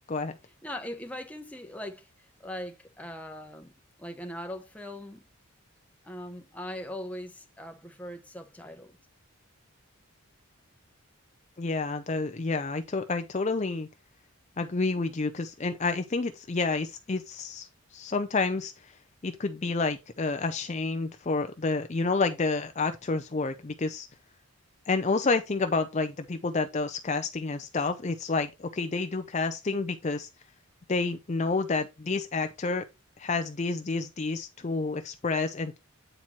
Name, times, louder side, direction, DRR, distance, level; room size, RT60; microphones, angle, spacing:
voice 1, 0.6-5.3 6.0-9.0, left 1 dB, 5° left, 0.9 m, -40 dB
voice 2, 11.6-13.9 14.6-18.9 19.2-24.1 24.9-30.3 30.9-32.8 33.2-35.8, left 3 dB, 30° left, 0.5 m, -29 dB
8.9 x 4.5 x 4.2 m
head